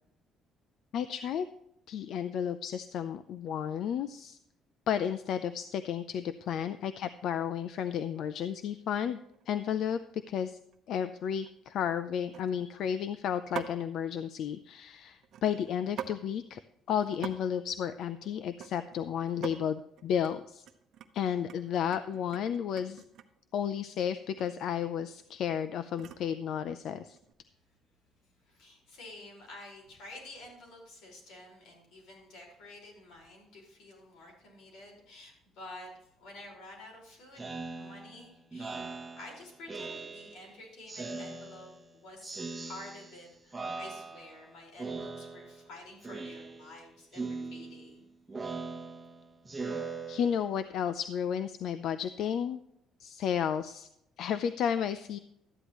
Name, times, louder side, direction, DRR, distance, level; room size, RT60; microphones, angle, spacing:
voice 1, 0.9-1.5 1.9-4.4 4.9-9.2 9.5-10.0 10.3-10.6 10.9-16.6 16.9-20.6 21.1-23.0 23.5-27.2 50.1-52.6 53.0-53.9 54.2-55.2, left 8 dB, 60° left, 12 dB, 0.5 m, -32 dB
sound 1, 9.3-9.6 10.1-10.4 10.7-10.8 11.2-11.5 12.3-12.8 13.5-13.9 15.2-16.2 16.5-16.6 16.9-17.4 17.6-19.0 19.3-19.6 20.0-20.3 20.6-23.4 24.3-24.5 24.8-26.3 27.0-27.3, right 9 dB, 55° right, 0.8 m, -44 dB
voice 2, 28.4-37.5 37.8-38.9 39.2-48.1, left 2 dB, 80° left, 0 dB, 4.9 m, -50 dB
Speech synthesizer, 37.4-40.5 40.9-41.9 42.2-43.2 43.5-44.4 44.8-45.7 46.0-46.8 47.1-50.7, right 3 dB, 15° right, 1.1 m, -40 dB
13.0 x 9.8 x 3.1 m, 0.78 s
cardioid pair, 150°, 0 cm